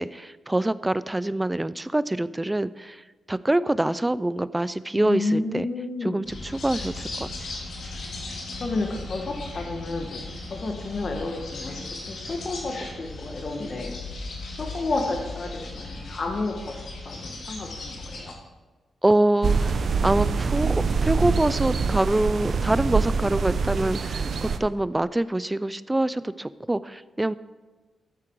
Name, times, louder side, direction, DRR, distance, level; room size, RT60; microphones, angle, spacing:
voice 1, 0.0-3.0 3.3-5.7 6.0-7.3 19.0-27.3, right 1 dB, 10° right, 16 dB, 0.3 m, -25 dB
voice 2, 5.0-6.2 8.6-11.8 12.1-13.9 14.6-18.3, left 3 dB, 40° left, 2 dB, 1.3 m, -31 dB
sound 1, 6.3-18.3, left 2 dB, 65° left, 2.8 m, -37 dB
sound 2, 19.4-24.6, right 5 dB, 55° right, 0.7 m, -25 dB
13.5 x 9.8 x 4.6 m, 1.3 s
wide cardioid pair, 135°, 0 cm